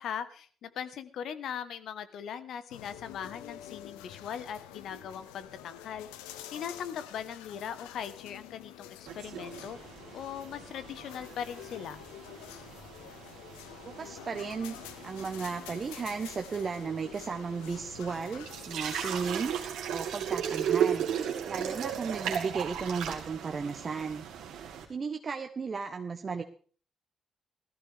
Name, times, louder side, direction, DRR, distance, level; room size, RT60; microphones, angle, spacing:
voice 1, 0.0-6.1 6.5-9.8 10.1-12.0, left 8 dB, 65° left, 11 dB, 1.3 m, -39 dB
sound 1, 2.7-19.7, left 11 dB, 85° left, 0.8 m, -48 dB
sound 2, 9.1-24.8, right 8 dB, 75° right, 2.5 m, -37 dB
voice 2, 13.8-14.8 15.0-21.1 21.5-24.2 24.9-26.4, right 5 dB, 45° right, 5 dB, 1.1 m, -35 dB
17.5 x 14.5 x 3.6 m, 0.43 s
hypercardioid pair, 45°, 0 cm